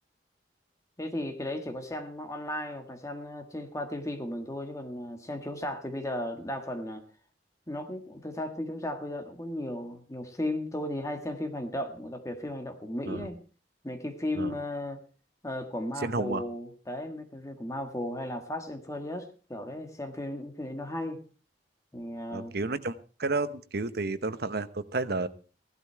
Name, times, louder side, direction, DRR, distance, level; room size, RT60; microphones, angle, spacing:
voice 1, 1.0-7.0 7.7-13.4 13.8-15.0 15.4-21.2 21.9-22.5, left 1 dB, 20° left, 6 dB, 1.6 m, -35 dB
voice 2, 16.0-16.4 22.3-22.9 23.2-25.3, right 3 dB, 60° right, 12 dB, 0.9 m, -31 dB
16.0 x 12.0 x 4.5 m, 0.37 s
head